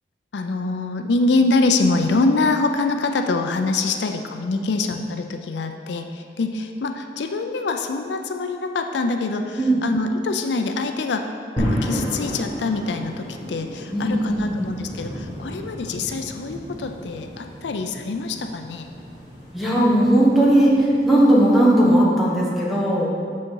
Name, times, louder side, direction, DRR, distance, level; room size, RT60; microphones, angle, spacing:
voice 1, 0.3-11.2 11.6-18.9, left 3 dB, 75° left, 6 dB, 0.4 m, -24 dB
sound 1, 11.6-21.7, equal, 25° left, 1.7 m, -33 dB
voice 2, 13.9-14.5 19.5-23.1, right 1 dB, ahead, -6 dB, 1.3 m, -17 dB
6.7 x 6.2 x 4.6 m, 2.3 s
head